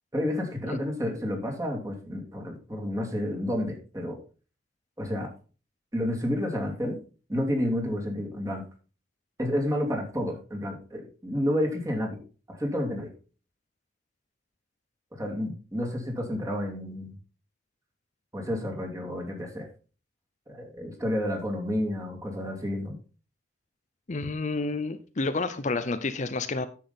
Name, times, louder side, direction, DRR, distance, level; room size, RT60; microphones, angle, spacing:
voice 1, 0.1-4.2 5.0-5.3 5.9-7.0 7.3-8.6 9.4-12.2 12.5-13.1 15.2-17.1 18.3-19.7 20.5-23.0, left 1 dB, 20° right, 1 dB, 2.7 m, -30 dB
voice 2, 24.1-26.7, left 3 dB, 40° left, 10 dB, 0.7 m, -29 dB
10.0 x 7.4 x 4.1 m, 0.36 s
head